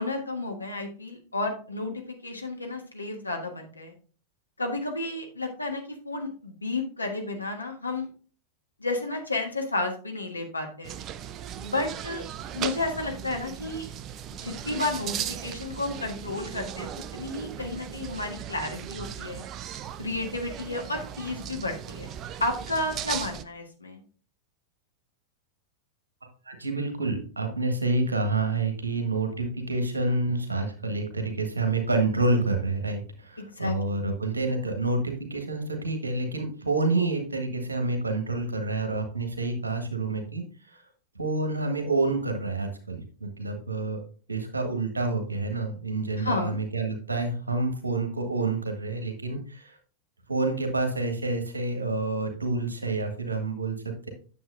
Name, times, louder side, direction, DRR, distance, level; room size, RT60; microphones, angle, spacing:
voice 1, 0.0-3.9 4.6-8.1 8.8-11.0 11.6-12.2 12.5-13.9 14.4-19.4 20.0-22.1 22.4-24.0 33.4-34.0 46.2-46.6, left 2 dB, 80° left, 2 dB, 1.5 m, -32 dB
sound 1, 10.8-23.4, right 10 dB, 35° right, 0.5 m, -37 dB
voice 2, 26.4-40.8 41.1-44.0 44.3-49.8 50.3-54.1, right 3 dB, 80° right, 5 dB, 1.4 m, -28 dB
9.4 x 7.1 x 2.6 m, 0.40 s
figure-of-eight pair, 90°, 0 cm